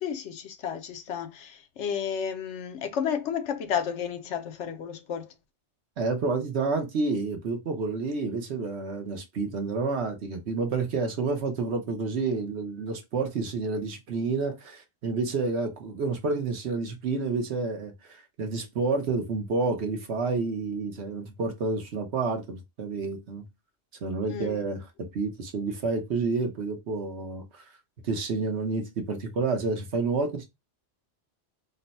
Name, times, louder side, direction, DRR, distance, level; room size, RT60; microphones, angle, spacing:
voice 1, 0.0-5.3 24.3-24.6, left 7 dB, 75° left, 1.0 m, -32 dB
voice 2, 6.0-23.4 24.0-27.7 28.0-30.4, right 4 dB, 65° right, 1.1 m, -29 dB
3.9 x 2.2 x 4.0 m
omnidirectional pair, 1.2 m